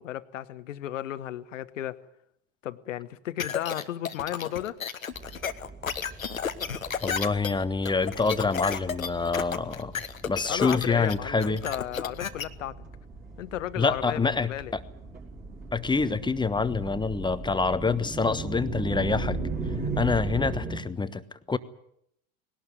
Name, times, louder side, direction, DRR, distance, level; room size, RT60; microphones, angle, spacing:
voice 1, 0.0-2.0 2.6-4.8 10.5-12.8 13.4-14.7, left 12 dB, 70° left, 1.2 m, -34 dB
sound 1, 3.4-12.4, left 7 dB, 85° left, 1.1 m, -32 dB
sound 2, 5.1-20.8, right 3 dB, 20° right, 5.2 m, -38 dB
voice 2, 7.0-9.9 10.3-11.6 13.8-14.8 15.7-19.4 20.0-21.2 21.5-21.6, left 4 dB, 10° left, 1.2 m, -26 dB
20.5 x 18.0 x 9.5 m
figure-of-eight pair, 75°, 40 cm